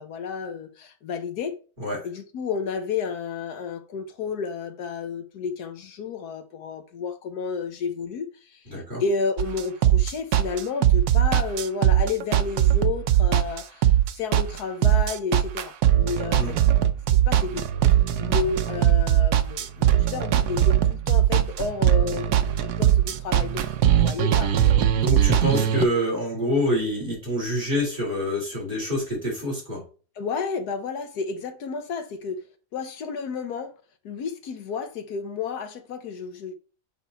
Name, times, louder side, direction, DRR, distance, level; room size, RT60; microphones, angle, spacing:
voice 1, 0.0-1.5 2.0-8.6 9.0-16.6 17.1-17.7 18.2-24.6 25.1-25.4 30.2-32.4 32.7-33.7 34.0-36.5, left 5 dB, 75° left, 1.3 m, -31 dB
voice 2, 8.7-9.0 16.3-16.6 24.9-29.8, equal, 30° right, 4.1 m, -26 dB
sound 1, 9.4-25.8, right 11 dB, 80° right, 1.2 m, -20 dB
7.0 x 4.1 x 4.2 m
omnidirectional pair, 1.7 m